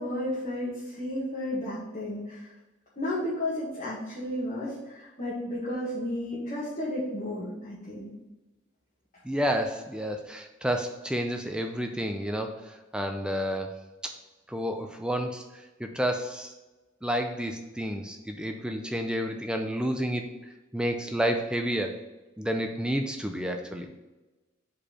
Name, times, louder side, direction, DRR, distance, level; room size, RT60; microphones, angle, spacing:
voice 1, 0.0-2.5 3.0-8.1, left 1 dB, 40° left, -9 dB, 1.7 m, -33 dB
voice 2, 9.2-13.7 14.0-14.1 14.5-16.5 17.0-20.3 20.7-22.0 22.4-23.9, equal, 5° right, 4 dB, 0.4 m, -30 dB
5.1 x 4.4 x 4.9 m, 1.1 s
head